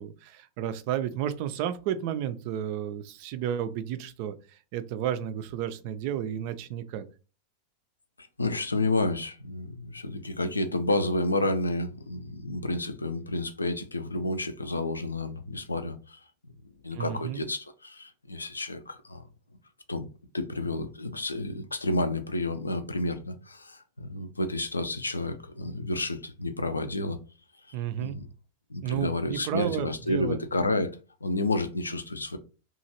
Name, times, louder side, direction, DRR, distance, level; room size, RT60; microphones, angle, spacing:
voice 1, 0.0-7.1 16.9-17.4 27.7-28.2 28.8-30.4, right 10 dB, 45° right, 0.3 m, -32 dB
voice 2, 8.2-16.2 16.8-19.2 19.9-20.1 20.3-27.2 27.7-28.3 28.7-30.9 31.2-32.4, left 2 dB, 80° left, 0.4 m, -30 dB
2.9 x 2.4 x 2.8 m
figure-of-eight pair, 90°, 0 cm